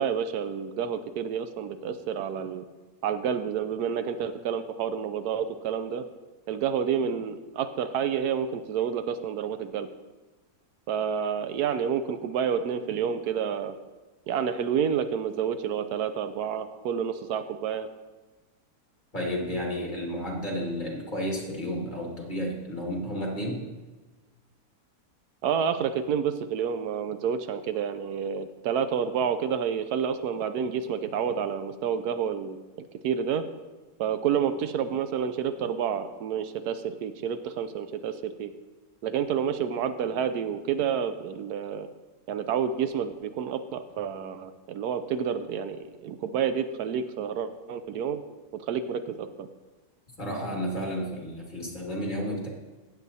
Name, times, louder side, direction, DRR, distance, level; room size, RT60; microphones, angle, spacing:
voice 1, 0.0-2.6 3.0-6.0 6.5-9.9 10.9-13.7 14.3-17.9 25.4-32.6 33.0-33.4 34.0-38.5 39.0-41.9 42.3-48.2 48.5-49.5, right 7 dB, 80° right, 10 dB, 1.1 m, -29 dB
voice 2, 19.1-23.6 50.2-52.5, equal, 30° left, -2 dB, 2.0 m, -32 dB
16.0 x 8.3 x 2.7 m, 1.2 s
omnidirectional pair, 1.7 m